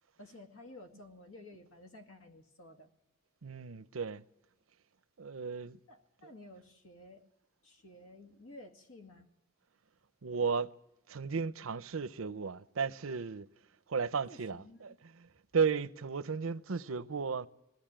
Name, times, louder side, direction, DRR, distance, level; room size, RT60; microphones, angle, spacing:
voice 1, 0.2-2.9 5.9-7.3 7.6-9.3 14.2-15.0, left 1 dB, 90° left, 2.2 m, -53 dB
voice 2, 3.4-4.2 5.2-5.8 10.2-10.7 11.1-13.5 13.9-15.3 15.5-17.5, right 5 dB, 90° right, 0.7 m, -34 dB
21.0 x 16.0 x 8.9 m
head